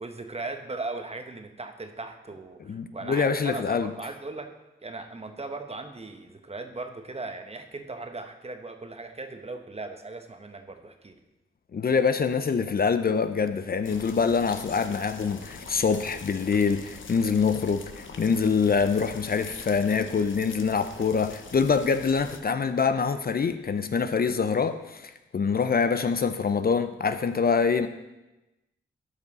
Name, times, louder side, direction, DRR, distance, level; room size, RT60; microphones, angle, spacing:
voice 1, 0.0-4.5 4.8-11.2, right 3 dB, 30° right, 6 dB, 1.0 m, -38 dB
voice 2, 2.7-3.9 11.7-27.9, left 5 dB, 45° left, 10 dB, 0.5 m, -25 dB
sound 1, 13.8-22.4, left 4 dB, 65° left, 0.9 m, -44 dB
12.0 x 5.4 x 4.1 m, 1.0 s
cardioid pair, 65°, 21 cm